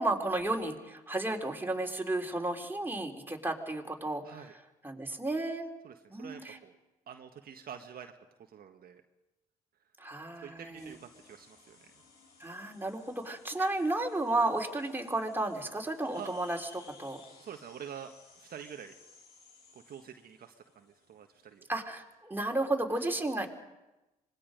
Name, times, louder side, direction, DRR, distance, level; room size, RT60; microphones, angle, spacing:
voice 1, 0.0-4.5 4.8-5.7 6.1-6.6 10.0-10.9 12.4-17.2 21.7-23.5, right 2 dB, 10° right, 2 dB, 3.8 m, -33 dB
voice 2, 5.8-6.8 7.1-8.1 8.5-9.0 10.4-11.9 16.1-16.3 17.4-18.9 19.7-21.6, right 8 dB, 55° right, 4 dB, 1.6 m, -47 dB
sound 1, 10.7-22.1, left 4 dB, 65° left, 7.3 m, -59 dB
26.0 x 21.0 x 5.2 m, 1.0 s
hypercardioid pair, 55°, 18 cm